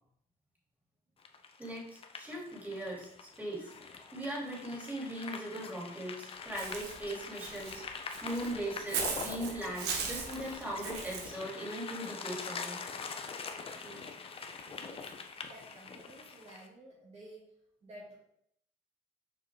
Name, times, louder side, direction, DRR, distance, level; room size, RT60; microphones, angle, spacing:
sound 1, 1.2-16.7, left 5 dB, 35° left, 0.7 m, -44 dB
voice 1, 1.6-12.8, right 1 dB, 10° right, -4 dB, 2.7 m, -40 dB
Walk footsteps / Bird, 6.5-11.3, right 6 dB, 75° right, 1.2 m, -38 dB
voice 2, 13.8-14.1 14.7-15.1 15.5-17.5 17.8-18.2, right 1 dB, 40° right, -4 dB, 1.5 m, -52 dB
6.6 x 4.7 x 3.6 m, 0.72 s
cardioid pair, 110°, 17 cm